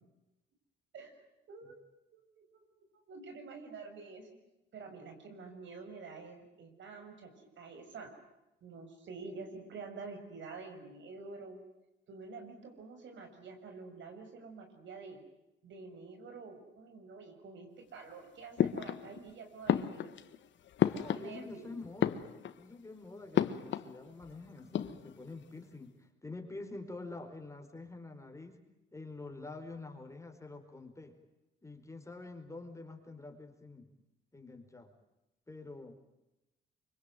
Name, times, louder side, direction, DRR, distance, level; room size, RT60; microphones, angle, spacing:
voice 1, 1.5-1.8 2.1-2.6 3.1-4.3 4.7-8.1 8.6-11.6 12.1-15.2 15.6-20.1 21.1-21.7, right 4 dB, 70° right, 5 dB, 6.3 m, -48 dB
sound 1, 18.6-19.3 19.7-21.6 21.9-22.7 23.3-24.0 24.2-24.3 24.6-25.3, left 10 dB, 65° left, 1.4 m, -32 dB
voice 2, 20.9-22.3 22.6-28.6 28.9-31.1 31.6-33.9 34.3-34.9 35.5-36.0, left 3 dB, 15° left, 5 dB, 4.8 m, -47 dB
25.0 x 24.0 x 9.3 m, 0.95 s
cardioid pair, 90°, 20 cm